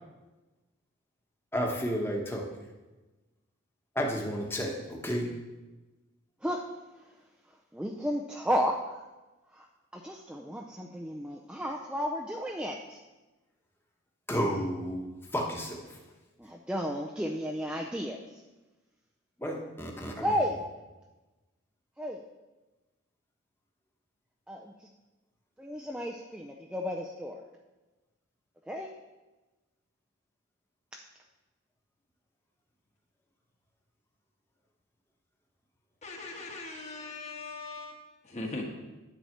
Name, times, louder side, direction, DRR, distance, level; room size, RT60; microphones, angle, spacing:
voice 1, 1.5-2.7 3.9-5.3 14.3-15.0 15.3-16.0 19.4-20.3, equal, 10° left, 0 dB, 1.1 m, -32 dB
voice 2, 7.5-9.0 9.5-9.7 9.9-13.0 16.4-18.4 20.2-20.6 22.0-22.2 24.5-24.9 25.6-27.5 28.7-28.9 30.9-31.0, equal, 5° right, 0 dB, 0.4 m, -33 dB
voice 3, 36.0-37.9 38.3-38.6, left 2 dB, 35° left, 1 dB, 1.3 m, -39 dB
10.5 x 4.2 x 7.3 m, 1.1 s
head